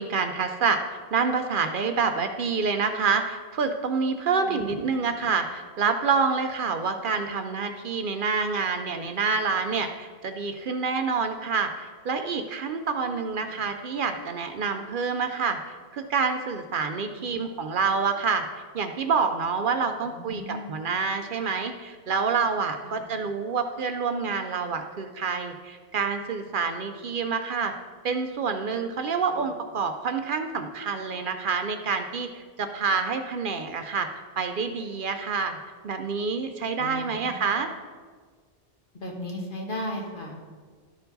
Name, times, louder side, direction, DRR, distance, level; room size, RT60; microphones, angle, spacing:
voice 1, 0.0-18.4 18.7-27.7 28.0-34.1 34.4-35.6 35.8-37.7, right 5 dB, 60° right, 7 dB, 0.7 m, -27 dB
voice 2, 4.4-4.8 17.1-17.3 20.0-20.7 22.8-22.9 36.8-37.5 38.9-40.3, left 1 dB, 55° left, 0 dB, 1.4 m, -36 dB
12.5 x 4.5 x 4.0 m, 1.5 s
omnidirectional pair, 1.0 m